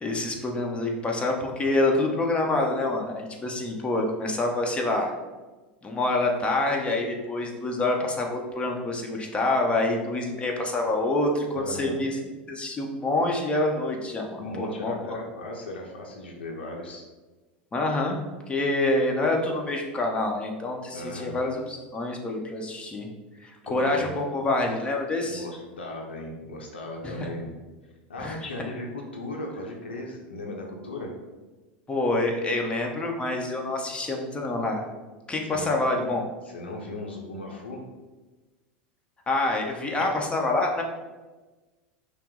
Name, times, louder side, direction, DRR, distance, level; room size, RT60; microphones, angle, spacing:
voice 1, 0.0-5.1 5.8-12.2 12.5-15.2 17.7-18.2 18.5-23.1 23.4-25.5 27.0-27.3 28.2-28.4 31.9-34.8 35.3-36.2 39.3-40.8, left 2 dB, 20° left, 1 dB, 0.8 m, -26 dB
voice 2, 11.5-12.0 14.4-17.0 20.9-21.4 23.6-24.1 25.3-27.5 28.1-31.1 35.5-35.7 36.4-37.8 40.0-40.1, left 1 dB, 90° left, 0 dB, 0.7 m, -37 dB
5.6 x 2.0 x 3.8 m, 1.2 s
hypercardioid pair, 95°, 6 cm